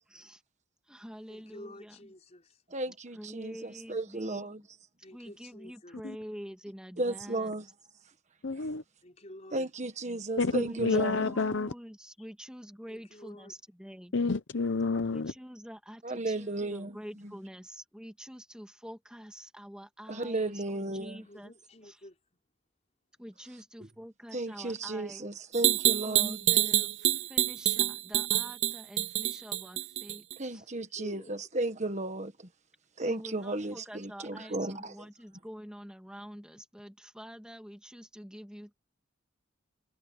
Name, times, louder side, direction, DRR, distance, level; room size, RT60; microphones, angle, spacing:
voice 1, 0.1-0.4 0.9-2.1 3.1-4.7 5.1-7.5 10.6-14.2 15.1-21.5 21.8-22.0 23.2-25.3 26.0-30.2 30.5-30.6 33.0-38.8, equal, 5° right, 2.7 m, -47 dB
voice 2, 1.3-2.6 5.0-6.0 9.0-9.7 12.9-13.5 21.2-22.2 30.7-31.5, left 1 dB, 35° left, 5.3 m, -50 dB
voice 3, 2.7-4.6 7.0-7.7 9.5-11.3 16.0-17.0 20.1-21.2 24.3-26.4 30.4-32.5 33.0-34.9, right 2 dB, 35° right, 1.5 m, -34 dB
voice 4, 8.4-8.8 10.4-11.7 14.1-15.3, left 3 dB, 65° left, 0.8 m, -29 dB
sound 1, 25.5-30.3, right 13 dB, 65° right, 0.6 m, -27 dB
head